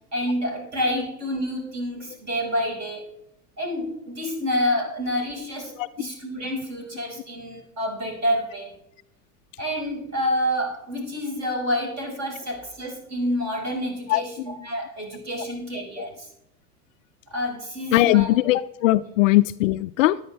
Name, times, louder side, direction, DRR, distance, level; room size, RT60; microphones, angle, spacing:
voice 1, 0.1-3.1 3.6-8.7 9.6-16.3 17.3-18.3, equal, 35° right, 1 dB, 5.0 m, -28 dB
voice 2, 14.1-14.4 15.4-15.5 16.0-16.1 17.9-20.2, left 17 dB, 55° left, 14 dB, 0.5 m, -20 dB
13.5 x 11.0 x 3.3 m, 0.81 s
hypercardioid pair, 90°, 48 cm